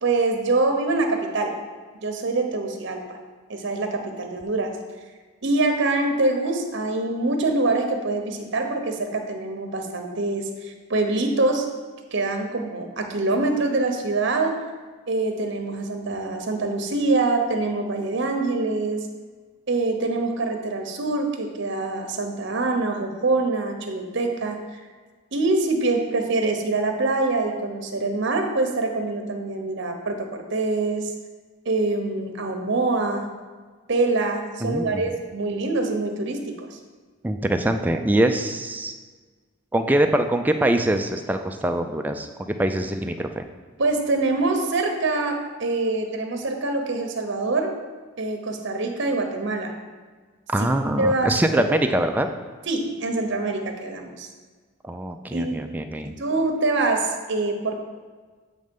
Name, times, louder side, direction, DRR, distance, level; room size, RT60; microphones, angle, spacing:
voice 1, 0.0-1.5 2.0-3.0 3.5-4.8 5.4-11.7 12.1-14.6 15.1-19.1 19.7-24.6 25.3-31.1 31.7-33.4 33.9-36.8 43.8-47.8 48.2-49.7 50.6-50.7 51.0-51.3 52.7-54.3 55.3-55.6 56.2-57.7, right 2 dB, 60° right, 4 dB, 0.8 m, -24 dB
voice 2, 34.6-35.1 37.2-39.0 39.7-43.4 50.5-52.3 54.8-56.1, right 1 dB, 10° right, 6 dB, 0.3 m, -23 dB
7.8 x 3.2 x 5.2 m, 1.4 s
head